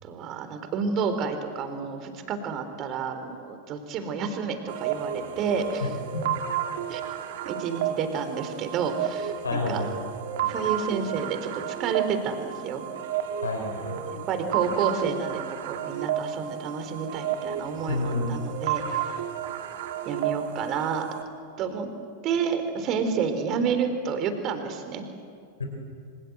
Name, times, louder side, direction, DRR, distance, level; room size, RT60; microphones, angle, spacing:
voice 1, 0.0-5.9 6.9-7.0 7.4-9.8 10.4-12.9 14.0-19.1 20.1-21.1 21.6-21.9 22.2-25.0, right 6 dB, 35° right, 8 dB, 3.8 m, -30 dB
Beep Blip Loop, 4.7-21.2, right 10 dB, 55° right, 2.4 m, -32 dB
voice 2, 9.4-9.9 13.4-14.0 17.9-18.4 25.6-25.7, left 2 dB, 75° left, 2 dB, 5.1 m, -29 dB
27.0 x 26.5 x 8.0 m, 2.2 s
figure-of-eight pair, 90°, 0 cm